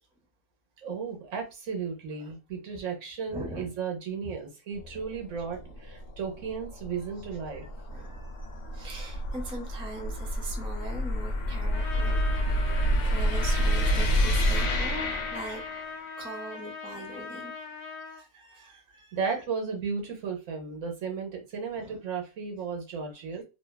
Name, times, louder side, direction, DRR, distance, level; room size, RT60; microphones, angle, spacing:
voice 1, 0.8-7.6 19.1-23.4, right 5 dB, 80° right, 1.1 m, -34 dB
voice 2, 3.3-3.7 4.2-4.3 5.6-5.7 7.9-15.6 16.2-17.5 17.9-19.2 21.7-22.0, right 2 dB, 10° right, 0.4 m, -42 dB
sound 1, 4.8-16.2, equal, 80° left, 0.9 m, -29 dB
Trumpet, 11.7-18.2, left 4 dB, 50° left, 0.5 m, -40 dB
2.7 x 2.2 x 2.2 m
omnidirectional pair, 1.3 m